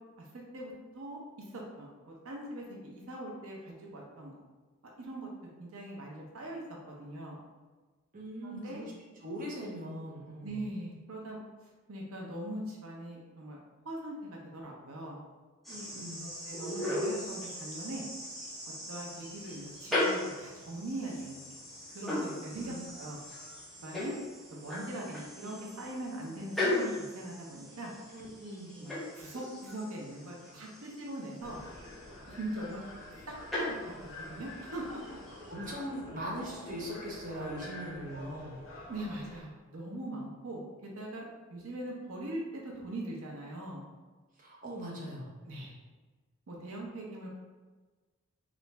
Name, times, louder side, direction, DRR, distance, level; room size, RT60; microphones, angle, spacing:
voice 1, 0.2-1.2 1.5-4.3 5.0-5.3 5.6-7.4 8.4-8.8 10.4-11.4 11.9-13.6 13.8-15.2 16.2-18.0 18.9-21.4 21.9-23.2 23.8-24.2 24.5-27.9 28.8-31.6 32.3-32.8 33.3-35.2 37.7-37.8 38.9-43.9 45.4-45.8 46.5-47.3, right 1 dB, 80° right, -1 dB, 0.7 m, -41 dB
voice 2, 8.1-8.9 9.2-10.6 15.7-16.3 22.5-22.8 28.1-28.7 35.5-38.5 44.4-45.7, equal, 40° right, -4 dB, 0.7 m, -41 dB
sound 1, 15.6-35.5, left 1 dB, ahead, 0.8 m, -38 dB
sound 2, 31.4-39.4, left 2 dB, 60° left, 0.6 m, -47 dB
3.0 x 2.5 x 3.3 m, 1.3 s
head